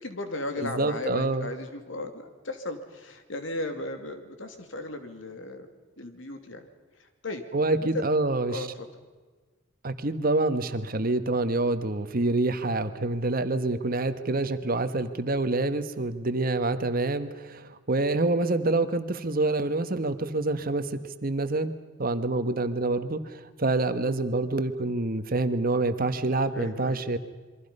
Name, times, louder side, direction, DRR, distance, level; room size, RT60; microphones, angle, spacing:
voice 1, 0.0-5.7 6.0-6.6 7.2-7.4 7.8-8.1 8.4-8.9 26.5-27.0, left 2 dB, 80° left, 6 dB, 2.6 m, -36 dB
voice 2, 0.6-1.5 7.5-8.7 9.8-21.7 22.0-27.2, right 2 dB, 50° right, 10 dB, 1.3 m, -27 dB
27.5 x 23.0 x 5.5 m, 1.4 s
head